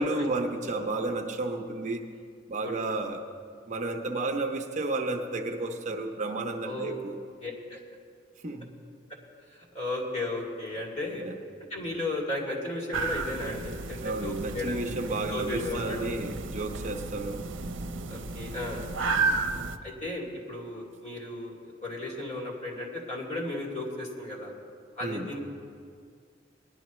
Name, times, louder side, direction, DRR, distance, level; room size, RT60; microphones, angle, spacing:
voice 1, 0.0-2.1 2.5-3.3 3.7-7.1 8.4-8.7 11.2-11.4 14.0-17.5 19.1-19.4 25.0-25.3, right 2 dB, 40° right, 3 dB, 0.7 m, -32 dB
voice 2, 6.6-7.0 7.4-7.8 9.7-11.2 11.7-14.8 15.3-16.1 18.1-18.8 19.8-24.5 25.0-25.4, left 2 dB, 40° left, -3 dB, 2.7 m, -35 dB
sound 1, 12.9-19.8, right 4 dB, 75° right, 0.7 m, -33 dB
19.5 x 11.5 x 3.1 m, 2.2 s
head